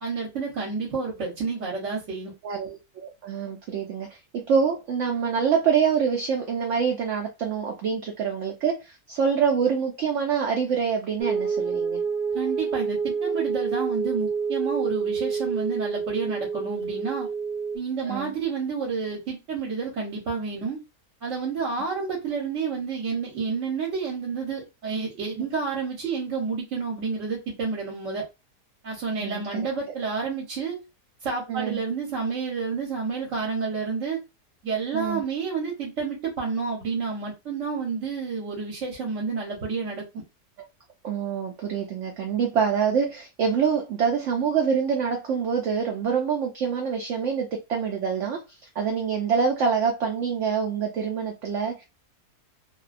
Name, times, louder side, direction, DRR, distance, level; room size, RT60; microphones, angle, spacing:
voice 1, 0.0-2.3 12.3-17.3 17.7-20.8 21.2-28.2 28.8-30.8 31.2-34.2 34.6-40.2, right 5 dB, 55° right, 1.0 m, -30 dB
voice 2, 2.4-12.0 18.0-18.3 29.2-29.4 31.5-31.8 34.9-35.2 41.0-48.4 48.8-51.8, right 6 dB, 75° right, 0.7 m, -25 dB
sound 1, 11.2-17.8, right 5 dB, 25° left, 0.6 m, -28 dB
2.6 x 2.1 x 2.4 m
omnidirectional pair, 1.8 m